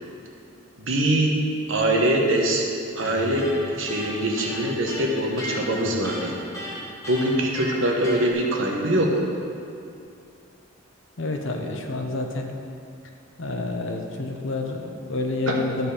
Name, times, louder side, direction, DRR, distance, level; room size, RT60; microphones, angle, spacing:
voice 1, 0.8-1.4 1.7-2.6 3.0-6.3 7.1-9.1 15.5-15.6, right 1 dB, 65° right, 0 dB, 1.3 m, -23 dB
Electric guitar, 3.0-8.3, equal, 15° left, 1.8 m, -35 dB
voice 2, 11.2-12.5 13.4-15.9, left 2 dB, 60° left, 3 dB, 0.9 m, -29 dB
12.0 x 5.3 x 5.0 m, 2.5 s
head